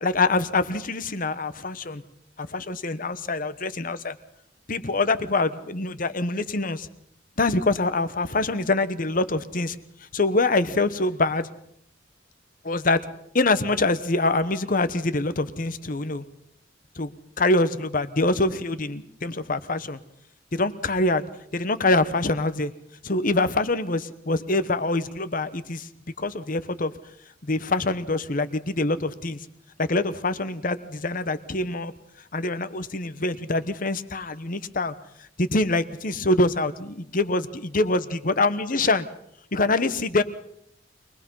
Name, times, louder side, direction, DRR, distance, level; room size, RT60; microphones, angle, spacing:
voice 1, 0.0-2.0 2.4-4.2 4.7-6.9 7.4-9.8 10.1-11.5 12.6-13.0 13.3-16.2 17.0-20.0 20.5-22.7 23.0-25.9 26.2-26.9 27.4-29.4 29.8-31.9 32.3-34.9 35.4-39.1 39.5-40.2, left 2 dB, 45° left, 12 dB, 1.1 m, -25 dB
23.5 x 19.5 x 5.6 m, 0.71 s
head